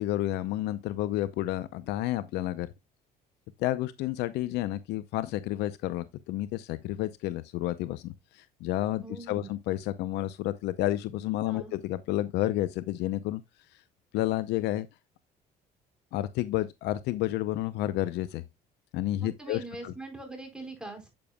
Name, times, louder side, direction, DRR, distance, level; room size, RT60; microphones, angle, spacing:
voice 1, 0.0-2.7 3.6-13.4 14.1-14.9 16.1-18.4 18.9-19.9, left 15 dB, 85° left, 0.7 m, -30 dB
voice 2, 9.0-9.5 11.4-11.7 19.2-21.1, right 2 dB, 5° right, 4.5 m, -42 dB
8.8 x 8.7 x 2.3 m
cardioid pair, 110°, 17 cm